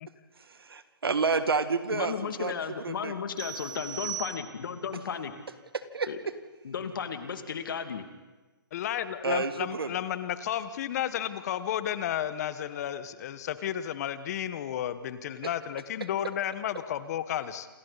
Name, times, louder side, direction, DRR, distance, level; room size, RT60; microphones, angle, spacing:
voice 1, 0.4-2.6 2.8-3.1 5.7-6.1 9.2-9.9, right 4 dB, 85° right, 10 dB, 1.9 m, -29 dB
voice 2, 1.9-5.3 6.1-6.2 6.6-8.1, left 6 dB, 60° left, 7 dB, 2.5 m, -34 dB
sound 1, 3.4-4.9, right 8 dB, 60° right, 2.5 m, -39 dB
voice 3, 8.7-17.7, left 10 dB, 45° left, 12 dB, 1.4 m, -32 dB
28.0 x 26.5 x 4.2 m, 1.2 s
hypercardioid pair, 140°, 12 cm